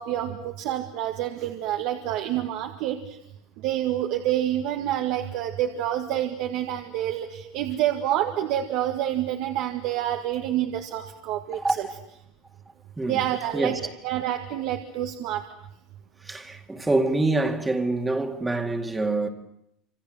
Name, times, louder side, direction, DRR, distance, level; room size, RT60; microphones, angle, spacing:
voice 1, 0.0-3.2 3.6-11.9 13.1-15.4, right 12 dB, 55° right, 2.0 m, -28 dB
voice 2, 16.3-19.3, right 2 dB, 10° right, 2.2 m, -25 dB
27.5 x 27.0 x 7.8 m
cardioid pair, 155°, 0 cm